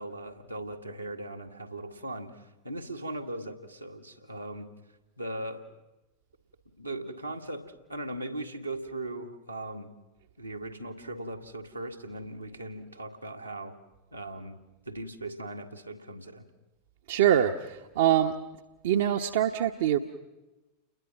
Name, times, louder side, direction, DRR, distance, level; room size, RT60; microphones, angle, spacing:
voice 1, 0.0-4.7 5.2-5.6 6.8-9.9 10.4-13.7 14.1-14.6 14.9-16.5, right 1 dB, 85° right, 1 dB, 2.0 m, -39 dB
voice 2, 17.1-18.3 18.8-20.0, right 10 dB, 55° right, 5 dB, 1.0 m, -24 dB
29.5 x 21.5 x 6.1 m, 1.1 s
figure-of-eight pair, 90°, 0 cm